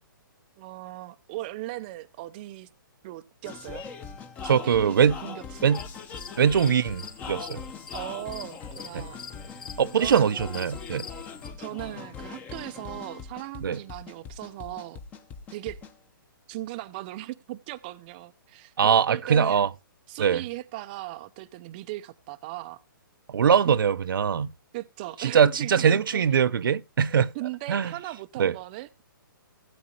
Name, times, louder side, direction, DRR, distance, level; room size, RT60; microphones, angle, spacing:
voice 1, 0.6-2.7 3.0-3.8 4.4-5.8 7.9-9.2 9.9-10.3 11.6-15.0 15.5-15.8 16.5-19.7 20.1-22.8 24.7-26.2 27.3-29.0, right 17 dB, 25° right, 0.6 m, -38 dB
sound 1, 3.4-16.0, left 6 dB, 15° left, 0.9 m, -41 dB
voice 2, 4.5-5.2 5.6-5.8 6.4-7.6 8.9-9.0 9.8-11.1 13.6-13.8 18.8-19.7 20.2-20.4 23.3-24.5 25.2-27.3 27.7-27.9 28.4-28.6, right 7 dB, 70° right, 0.7 m, -22 dB
sound 2, 5.7-11.5, left 5 dB, 80° left, 2.5 m, -45 dB
16.5 x 8.7 x 2.8 m
hypercardioid pair, 160°, 12 cm